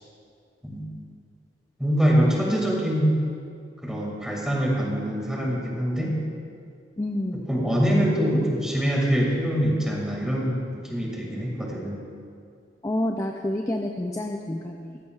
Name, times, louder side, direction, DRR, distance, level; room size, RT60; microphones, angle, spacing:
voice 1, 0.6-1.0 1.8-3.2 3.8-6.2 7.5-12.0, equal, 5° right, -3 dB, 2.0 m, -24 dB
voice 2, 7.0-7.4 12.8-15.0, left 1 dB, 15° left, 2 dB, 0.5 m, -28 dB
15.5 x 14.0 x 2.4 m, 2.3 s
head